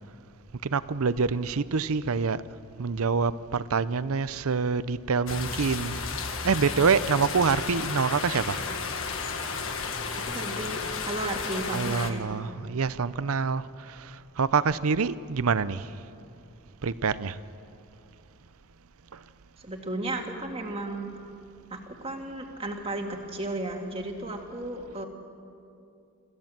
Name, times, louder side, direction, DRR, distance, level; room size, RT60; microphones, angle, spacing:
voice 1, 0.6-2.4 2.8-6.0 6.4-8.6 11.6-15.9 16.8-17.4 19.1-19.2, right 5 dB, 70° right, 0.6 m, -26 dB
sound 1, 5.3-12.1, left 4 dB, 65° left, 1.6 m, -33 dB
voice 2, 10.1-12.3 19.6-21.1 21.7-25.1, right 2 dB, 25° right, 1.9 m, -34 dB
27.0 x 14.5 x 7.5 m
head